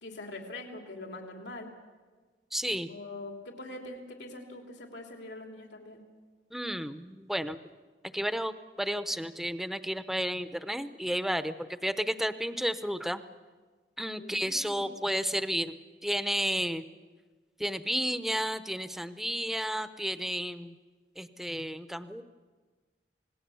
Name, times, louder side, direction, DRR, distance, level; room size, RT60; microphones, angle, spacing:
voice 1, 0.0-1.7 2.9-6.0 14.2-15.1, left 2 dB, 80° left, 2 dB, 3.1 m, -43 dB
voice 2, 2.5-2.9 6.5-7.6 8.1-13.2 14.0-15.8 16.0-16.8 17.6-20.7 21.2-22.2, equal, ahead, 11 dB, 0.8 m, -32 dB
27.5 x 19.0 x 7.0 m, 1.4 s
head